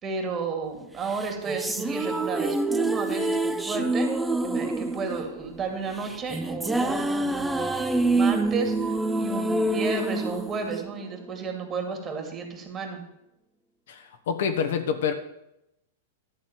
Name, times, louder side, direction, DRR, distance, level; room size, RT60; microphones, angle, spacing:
voice 1, 0.0-4.1 4.4-13.0, right 4 dB, 30° right, 3 dB, 2.3 m, -33 dB
sound 1, 1.1-11.5, right 2 dB, 10° right, 0.7 m, -27 dB
voice 2, 13.9-15.1, left 7 dB, 70° left, 7 dB, 1.2 m, -27 dB
11.5 x 4.3 x 7.6 m, 0.85 s
hypercardioid pair, 110°, 0 cm